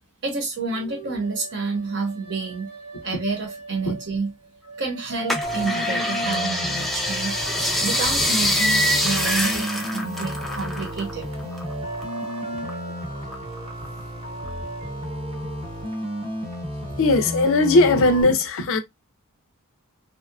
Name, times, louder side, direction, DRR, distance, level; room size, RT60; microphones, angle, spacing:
voice 1, 0.2-2.7 3.0-4.3 4.8-7.4 7.8-11.3, right 4 dB, 55° right, 0.9 m, -29 dB
sound 1, 0.7-4.2 4.7-9.9 10.3-15.9, right 2 dB, 85° right, 0.9 m, -37 dB
sound 2, 5.3-11.1 11.4-12.7 13.2-14.0 14.5-14.6, left 1 dB, ahead, 0.3 m, -25 dB
sound 3, 5.4-18.2, equal, 25° right, 0.8 m, -33 dB
voice 2, 17.0-18.8, left 2 dB, 65° left, 0.5 m, -18 dB
2.7 x 2.2 x 2.3 m
head